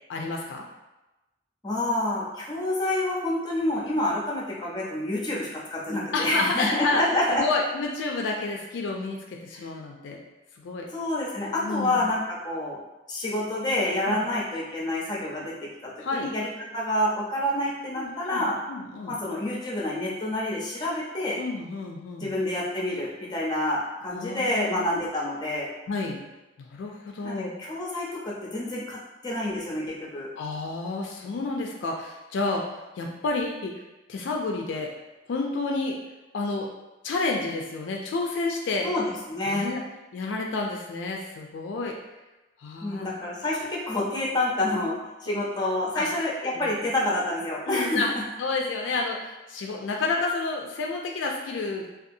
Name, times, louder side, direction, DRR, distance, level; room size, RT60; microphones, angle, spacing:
voice 1, 0.1-0.6 6.1-7.0 7.3-10.2 10.6-10.9 11.6-12.1 14.1-14.2 16.0-16.3 18.0-19.2 21.4-22.3 24.1-24.9 25.9-26.2 26.6-27.5 30.4-33.7 34.1-34.9 35.3-36.0 36.3-36.7 37.0-38.9 39.5-39.8 40.1-42.0 42.6-43.1 45.3-45.4 46.0-46.1 46.5-46.7 47.7-48.1 48.4-51.9, left 3 dB, 70° left, 1 dB, 0.3 m, -30 dB
voice 2, 1.6-7.4 9.5-9.6 10.9-12.8 13.1-15.5 15.8-18.6 19.1-21.4 22.2-25.7 27.2-30.3 38.8-39.7 42.8-48.2, left 1 dB, 20° left, -4 dB, 0.5 m, -28 dB
2.7 x 2.3 x 2.6 m, 1.1 s
head